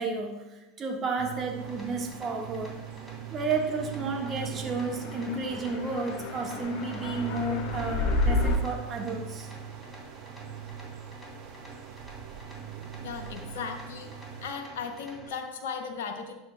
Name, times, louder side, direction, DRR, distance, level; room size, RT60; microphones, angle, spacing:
voice 1, 0.0-2.7 3.3-9.5, right 3 dB, 30° right, 1 dB, 1.4 m, -32 dB
sound 1, 1.2-14.5, right 12 dB, 60° right, 0.5 m, -41 dB
sound 2, 1.6-15.3, equal, 5° left, 2.7 m, -48 dB
sound 3, 4.1-8.6, left 2 dB, 50° left, 1.2 m, -31 dB
voice 2, 13.0-14.1 14.4-16.3, left 6 dB, 70° left, 4 dB, 0.8 m, -36 dB
11.0 x 7.2 x 2.2 m, 1.0 s
hypercardioid pair, 80°, 0 cm